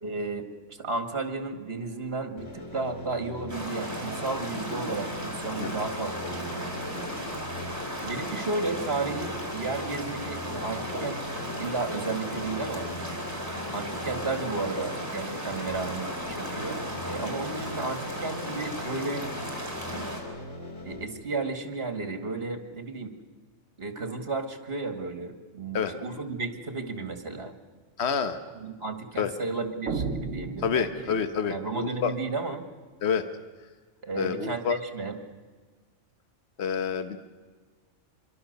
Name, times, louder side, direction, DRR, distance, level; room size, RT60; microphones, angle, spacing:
voice 1, 0.0-7.4 8.0-11.2 11.6-12.9 13.7-19.3 20.8-23.1 23.8-27.5 28.5-31.1 31.5-32.6 34.0-35.2, right 3 dB, 55° right, 7 dB, 2.4 m, -33 dB
sound 1, 2.4-21.0, left 2 dB, 80° left, 3.1 m, -40 dB
sound 2, 3.5-20.2, equal, 15° right, 4.5 m, -36 dB
voice 2, 28.0-28.4 29.2-29.3 30.6-32.1 33.0-33.3 34.2-34.8 36.6-37.2, left 6 dB, 60° left, 9 dB, 1.4 m, -28 dB
sound 3, 29.9-31.5, right 4 dB, 80° right, 1.4 m, -33 dB
26.0 x 22.5 x 6.8 m, 1.4 s
omnidirectional pair, 1.3 m